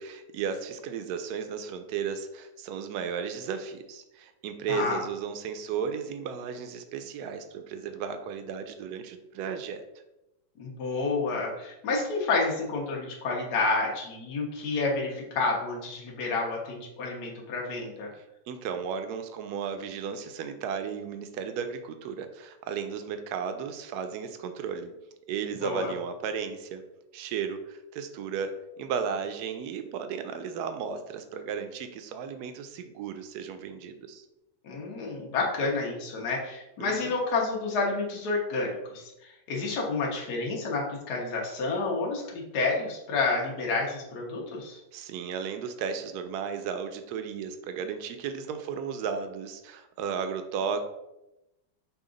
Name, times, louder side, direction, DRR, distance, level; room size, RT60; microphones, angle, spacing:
voice 1, 0.0-9.8 18.2-24.9 25.3-26.8 27.1-34.3 36.8-37.2 44.9-50.8, right 6 dB, 70° right, 8 dB, 1.0 m, -34 dB
voice 2, 4.7-5.0 10.6-18.1 25.6-25.9 34.6-44.8, left 3 dB, 65° left, -2 dB, 1.4 m, -29 dB
5.8 x 2.4 x 3.7 m, 0.91 s
omnidirectional pair, 1.9 m